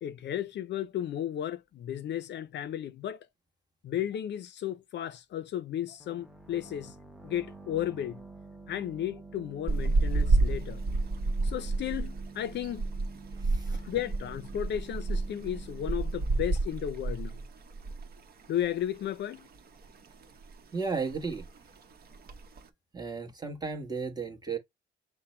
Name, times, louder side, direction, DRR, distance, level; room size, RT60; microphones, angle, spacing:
voice 1, 0.0-3.2 3.8-6.9 7.2-8.2 8.7-10.8 11.4-12.8 13.7-17.4 18.5-19.5, left 11 dB, 60° left, 0.5 m, -34 dB
sound 1, 6.0-17.5, right 3 dB, ahead, 1.0 m, -49 dB
sound 2, 9.7-18.2 18.4-18.7 19.1-19.9 20.2-20.6 20.9-21.0 21.1-21.6 22.1-22.6, right 3 dB, 50° right, 1.0 m, -30 dB
voice 2, 13.4-13.8 20.7-21.5 22.9-24.6, right 4 dB, 20° right, 1.3 m, -34 dB
5.8 x 2.1 x 4.2 m
cardioid pair, 90°, 20 cm